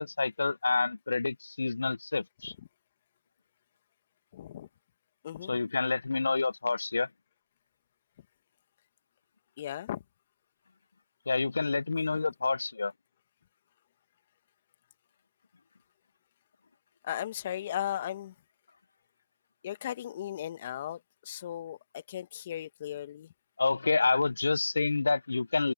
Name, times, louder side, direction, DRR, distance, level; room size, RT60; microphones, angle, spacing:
voice 1, 0.0-2.5 5.5-7.1 11.3-12.9 23.6-25.7, left 4 dB, 80° left, 0.8 m, -28 dB
voice 2, 4.3-4.7 5.2-5.5 9.6-10.0 17.0-18.3 19.6-23.3, left 12 dB, 40° left, 1.6 m, -37 dB
open air
hypercardioid pair, 150°, 0 cm